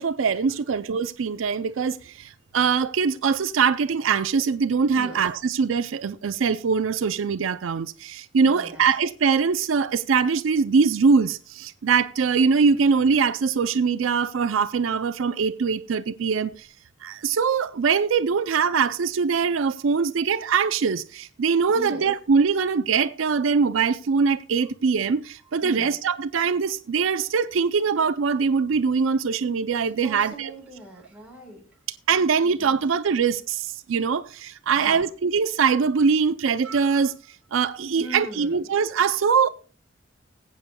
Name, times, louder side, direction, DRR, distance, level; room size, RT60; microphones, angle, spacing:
voice 1, 0.0-16.7 17.0-30.5 32.1-37.1 37.5-39.5, right 5 dB, 90° right, 0.5 m, -22 dB
voice 2, 8.5-8.9 21.7-22.1 25.6-25.9 30.0-31.6 32.6-32.8 34.7-35.1 38.0-38.6, right 1 dB, 5° right, 4.1 m, -40 dB
20.5 x 8.5 x 2.2 m
head